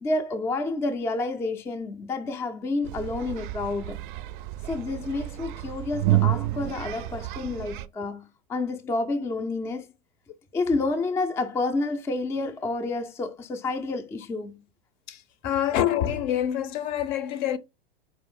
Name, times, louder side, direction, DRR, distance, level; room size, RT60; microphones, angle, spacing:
voice 1, 0.0-4.0 4.7-9.9 10.5-14.6, left 3 dB, 10° left, 0.3 m, -29 dB
sound 1, 2.9-7.9, right 15 dB, 55° right, 0.4 m, -29 dB
voice 2, 15.1-17.6, left 11 dB, 55° left, 0.6 m, -26 dB
4.4 x 2.4 x 3.5 m
hypercardioid pair, 115°, 29 cm